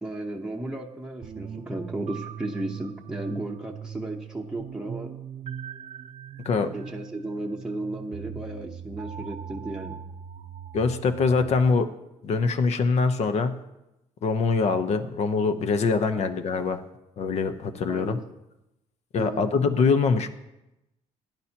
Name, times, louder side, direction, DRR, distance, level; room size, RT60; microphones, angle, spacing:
voice 1, 0.0-5.1 6.7-10.0 16.1-16.2 17.9-18.2 19.2-19.5, right 1 dB, 5° right, -1 dB, 0.9 m, -34 dB
sound 1, 1.2-11.6, right 8 dB, 50° right, 0.6 m, -40 dB
voice 2, 10.7-11.9 12.2-13.6 14.2-16.8 17.2-18.2 19.1-20.3, left 4 dB, 55° left, 9 dB, 0.9 m, -23 dB
16.0 x 10.5 x 2.9 m, 0.92 s
cardioid pair, 120°, 13 cm